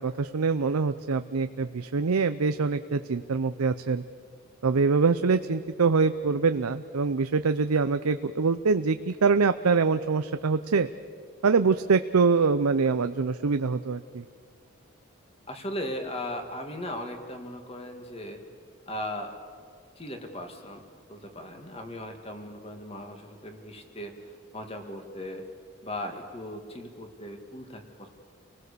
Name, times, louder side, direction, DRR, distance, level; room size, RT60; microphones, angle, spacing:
voice 1, 0.0-4.0 4.6-10.9 11.4-14.2, right 4 dB, 90° right, 10 dB, 0.6 m, -24 dB
voice 2, 15.5-18.4 18.9-19.4 20.0-20.8 21.1-24.1 24.5-25.5 25.8-28.1, left 1 dB, 25° left, 5 dB, 2.0 m, -37 dB
29.5 x 19.5 x 6.9 m, 2.1 s
head